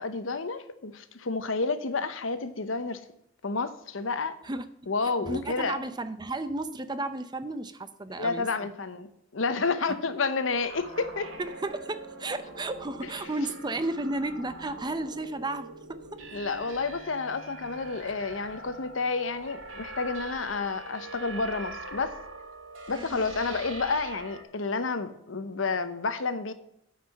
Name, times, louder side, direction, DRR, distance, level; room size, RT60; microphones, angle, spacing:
voice 1, 0.0-3.0 3.4-4.4 4.9-5.8 8.2-9.1 9.3-11.3 16.3-22.2 22.9-26.5, left 4 dB, 85° left, 0.9 m, -30 dB
voice 2, 5.0-8.7 11.4-16.2 22.9-23.4, right 2 dB, 20° right, 0.6 m, -33 dB
sound 1, 10.5-24.4, right 2 dB, 85° right, 2.1 m, -43 dB
9.2 x 5.0 x 7.2 m
head